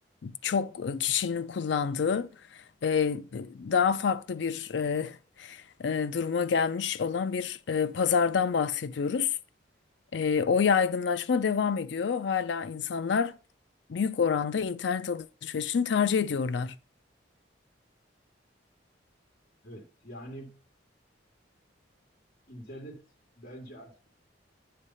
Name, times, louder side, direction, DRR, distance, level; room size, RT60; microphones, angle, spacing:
voice 1, 0.2-2.3 2.8-9.4 10.1-13.3 13.9-16.8, left 6 dB, 70° left, 0.4 m, -28 dB
voice 2, 19.6-20.6 22.5-23.0 23.4-24.1, right 1 dB, 50° left, 1.7 m, -45 dB
9.7 x 3.3 x 5.4 m
head